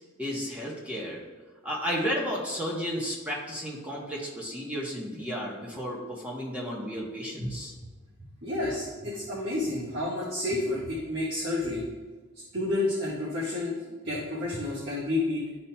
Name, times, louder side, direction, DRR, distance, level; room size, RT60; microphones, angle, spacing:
voice 1, 0.2-1.2 1.6-7.7, equal, 5° right, -4 dB, 1.0 m, -33 dB
voice 2, 8.4-11.8 12.5-13.8 14.0-15.4, left 2 dB, 55° right, -8 dB, 1.4 m, -30 dB
11.5 x 4.2 x 2.2 m, 1.4 s
head